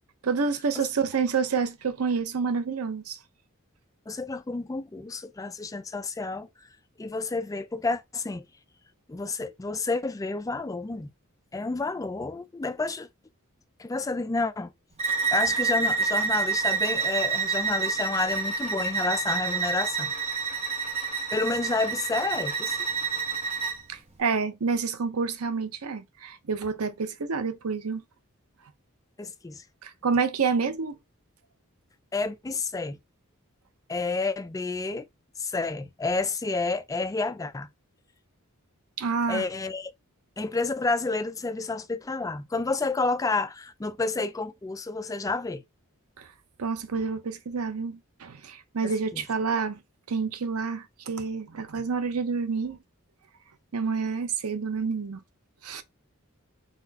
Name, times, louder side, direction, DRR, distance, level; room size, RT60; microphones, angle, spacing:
voice 1, 0.2-3.2 23.9-28.0 29.8-31.0 39.0-39.5 46.2-46.3 46.6-49.8 50.1-52.8 53.7-55.2 55.6-55.8, right 5 dB, 80° right, 0.7 m, -28 dB
voice 2, 4.1-6.7 7.0-8.4 9.1-11.1 11.5-13.1 13.8-14.7 15.3-20.1 21.3-22.8 29.2-29.6 32.1-33.0 33.9-35.0 35.4-37.7 39.3-39.9 40.4-45.6 48.8-49.2, left 3 dB, 15° left, 0.3 m, -30 dB
Bowed string instrument, 15.0-23.8, right 5 dB, 30° right, 1.2 m, -28 dB
4.2 x 4.2 x 2.7 m
head